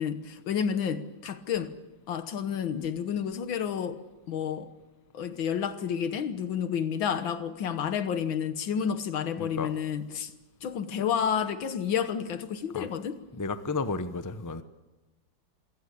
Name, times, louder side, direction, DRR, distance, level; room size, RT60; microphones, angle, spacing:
voice 1, 0.0-1.7 2.1-4.0 4.3-4.7 5.1-10.3 10.6-13.2, left 8 dB, 80° left, 2.0 m, -30 dB
voice 2, 9.4-9.7 12.7-12.9 13.3-14.6, left 3 dB, 20° left, 0.5 m, -32 dB
27.0 x 16.5 x 8.4 m
omnidirectional pair, 2.1 m